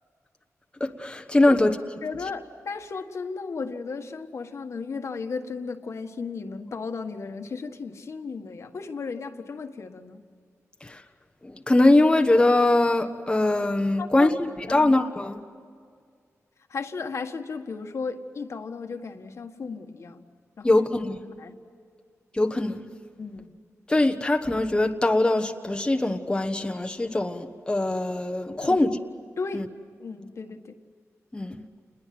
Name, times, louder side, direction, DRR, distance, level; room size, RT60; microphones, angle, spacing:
voice 1, 0.8-1.7 10.8-11.0 11.4-15.4 20.6-21.3 22.3-22.8 23.9-29.0 29.5-29.6 31.3-31.6, left 2 dB, 15° left, 1.2 m, -22 dB
voice 2, 2.0-10.2 14.0-14.3 14.7-14.9 16.7-20.2 20.6-20.8 21.4-21.6 23.2-23.6 28.6-28.8 29.4-29.7 30.0-30.8, left 4 dB, 60° left, 1.7 m, -35 dB
29.0 x 21.0 x 7.8 m
wide cardioid pair, 105°, 6 cm